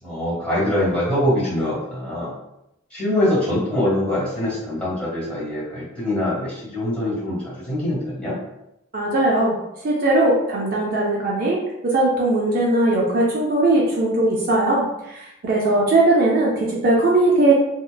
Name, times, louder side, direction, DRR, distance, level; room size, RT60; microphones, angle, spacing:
voice 1, 0.0-2.3 2.9-8.4, left 1 dB, 5° left, -9 dB, 1.3 m, -23 dB
voice 2, 8.9-9.5 9.8-11.6 11.9-17.5, right 2 dB, 45° right, -4 dB, 0.4 m, -19 dB
2.7 x 2.1 x 2.2 m, 0.86 s
head